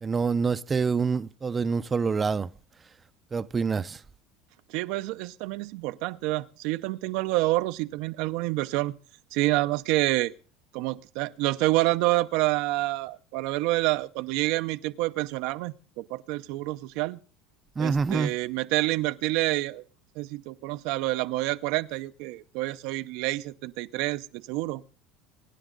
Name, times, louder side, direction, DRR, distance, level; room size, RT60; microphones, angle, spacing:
voice 1, 0.0-2.5 3.3-4.0 17.8-18.3, right 5 dB, 25° right, 0.6 m, -26 dB
voice 2, 4.7-8.9 9.3-10.3 10.7-17.2 17.8-19.8 20.2-24.8, right 19 dB, 70° right, 0.6 m, -28 dB
23.5 x 10.0 x 3.9 m
supercardioid pair, 105°, 0 cm